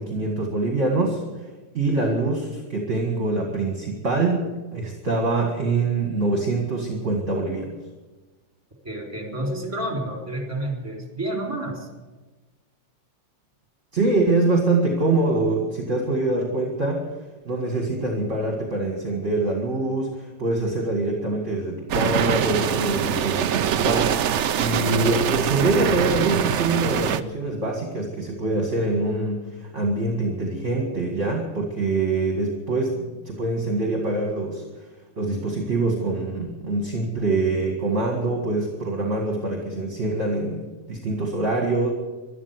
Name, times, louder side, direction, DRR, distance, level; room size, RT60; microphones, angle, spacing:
voice 1, 0.0-7.7 13.9-17.0 17.5-34.8 35.2-41.9, right 2 dB, 40° right, 1 dB, 2.2 m, -24 dB
voice 2, 8.8-11.9, right 1 dB, 15° right, 0 dB, 3.9 m, -29 dB
sound 1, 21.9-27.2, right 9 dB, 80° right, 0.6 m, -23 dB
12.5 x 12.0 x 9.6 m, 1.2 s
omnidirectional pair, 2.0 m